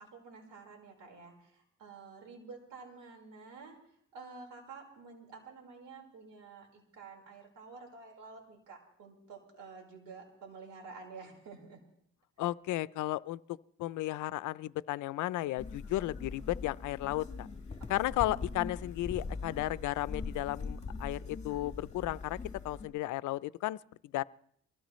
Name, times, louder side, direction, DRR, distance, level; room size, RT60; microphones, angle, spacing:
voice 1, 0.0-3.8 4.1-11.8 17.8-17.9, right 4 dB, 90° right, 2 dB, 4.6 m, -50 dB
voice 2, 12.4-17.5 17.9-22.4 22.6-23.8 24.0-24.2, left 16 dB, 80° left, 18 dB, 0.5 m, -34 dB
sound 1, 15.6-22.9, left 4 dB, 25° left, 3.0 m, -41 dB
24.0 x 17.0 x 3.1 m, 0.67 s
cardioid pair, 90°, 30 cm